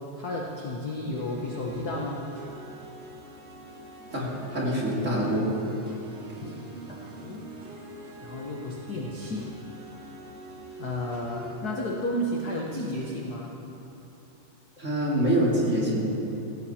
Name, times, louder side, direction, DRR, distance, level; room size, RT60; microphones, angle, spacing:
voice 1, 0.2-2.2 6.4-7.5 8.2-9.5 10.8-13.5, left 1 dB, 55° left, -2 dB, 1.0 m, -33 dB
sound 1, 1.1-11.6, equal, 75° right, 3.4 m, -43 dB
voice 2, 4.1-5.5 14.8-16.2, right 1 dB, 25° right, -5 dB, 2.7 m, -25 dB
17.5 x 15.5 x 4.4 m, 2.9 s
omnidirectional pair, 3.5 m